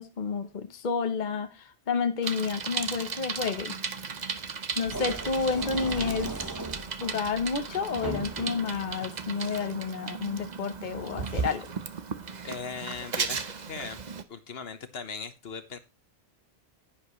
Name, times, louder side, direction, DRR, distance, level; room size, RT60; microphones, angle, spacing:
voice 1, 0.0-1.5 1.9-3.7 4.8-6.3 7.0-11.7, left 5 dB, 45° left, 8 dB, 1.0 m, -30 dB
Bicycle, 2.2-14.2, right 5 dB, 45° right, 0.9 m, -36 dB
sound 1, 4.8-8.8, right 2 dB, 20° right, 0.9 m, -38 dB
voice 2, 12.4-14.0 14.3-15.8, left 5 dB, 65° left, 11 dB, 1.3 m, -39 dB
10.5 x 10.0 x 3.1 m, 0.26 s
omnidirectional pair, 1.1 m